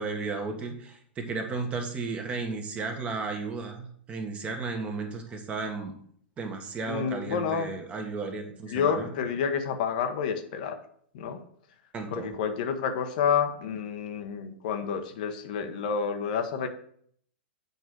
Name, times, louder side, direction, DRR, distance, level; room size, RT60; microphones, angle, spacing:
voice 1, 0.0-5.9 6.4-9.1 11.9-12.3, right 4 dB, 20° right, 4 dB, 1.4 m, -34 dB
voice 2, 6.9-7.7 8.7-10.8 11.1-11.4 12.1-16.7, left 7 dB, 50° left, 6 dB, 1.0 m, -29 dB
8.2 x 4.6 x 6.2 m, 0.62 s
figure-of-eight pair, 100°, 6 cm